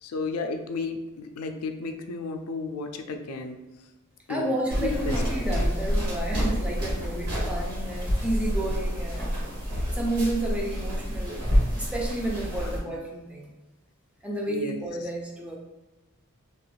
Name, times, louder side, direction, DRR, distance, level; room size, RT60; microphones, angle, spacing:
voice 1, 0.0-3.6 4.3-5.2 12.7-13.0 14.5-14.8, left 3 dB, 80° left, 5 dB, 0.4 m, -33 dB
voice 2, 4.3-9.5 9.9-11.4 11.8-13.5 14.2-15.6, right 1 dB, 5° right, -1 dB, 0.4 m, -31 dB
sound 1, 4.7-12.8, equal, 80° right, 1.3 m, -28 dB
2.9 x 2.4 x 3.1 m, 1.1 s
head